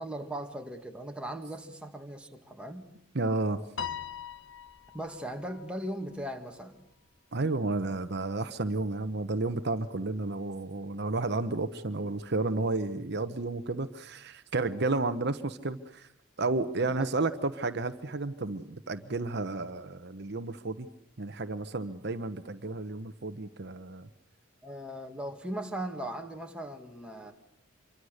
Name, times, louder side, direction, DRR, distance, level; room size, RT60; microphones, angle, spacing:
voice 1, 0.0-2.9 4.9-6.8 16.8-17.1 24.6-27.3, right 1 dB, 5° right, 3 dB, 2.0 m, -38 dB
voice 2, 3.1-3.6 7.3-16.1 16.4-20.9 21.2-24.1, right 2 dB, 55° right, 10 dB, 1.0 m, -32 dB
Piano, 3.8-6.3, left 8 dB, 65° left, 1.2 m, -41 dB
26.5 x 24.5 x 6.6 m, 0.76 s
head